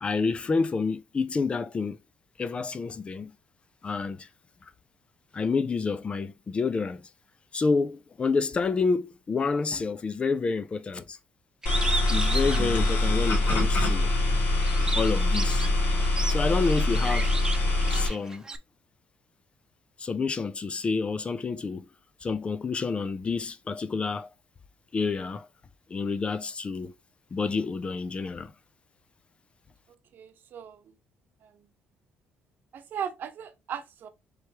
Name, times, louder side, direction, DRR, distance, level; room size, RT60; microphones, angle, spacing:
voice 1, 0.0-2.0 2.4-3.3 3.8-4.3 5.3-7.1 7.5-11.2 12.1-14.1 15.0-15.7 16.3-17.3 17.9-18.4 20.0-21.9 22.2-24.3 24.9-25.5 25.9-26.9 27.3-28.5, left 4 dB, 30° left, 0.5 m, -28 dB
Bird, 11.6-13.6 14.1-18.6, right 3 dB, 20° right, 0.6 m, -34 dB
sound 1, 11.7-18.1, left 2 dB, 60° left, 2.6 m, -24 dB
voice 2, 30.1-30.8 31.4-31.6 32.7-34.1, right 8 dB, 60° right, 0.9 m, -37 dB
4.7 x 3.3 x 2.9 m
cardioid pair, 105°, 4 cm